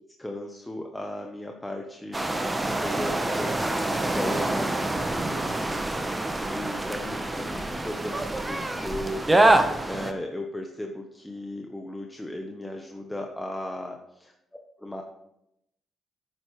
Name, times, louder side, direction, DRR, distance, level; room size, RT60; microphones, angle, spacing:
voice 1, 0.2-3.6 4.1-4.8 5.1-6.0 6.5-9.2 9.6-14.3 14.8-15.0, left 1 dB, 10° left, 2 dB, 0.9 m, -36 dB
sound 1, 2.1-10.1, right 2 dB, 15° right, 0.9 m, -26 dB
9.5 x 8.1 x 3.2 m, 0.81 s
cardioid pair, 90°, 0 cm